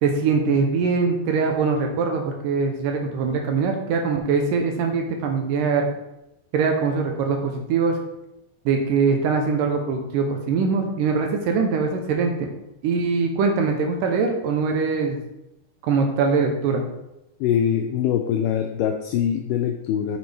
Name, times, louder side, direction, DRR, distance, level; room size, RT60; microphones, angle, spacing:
voice 1, 0.0-5.9 6.5-8.0 8.7-12.5 12.8-15.2 15.8-16.8, right 5 dB, 75° right, 3 dB, 2.2 m, -22 dB
voice 2, 17.4-20.2, left 9 dB, 90° left, 5 dB, 1.8 m, -23 dB
7.3 x 6.1 x 3.3 m, 0.89 s
omnidirectional pair, 4.3 m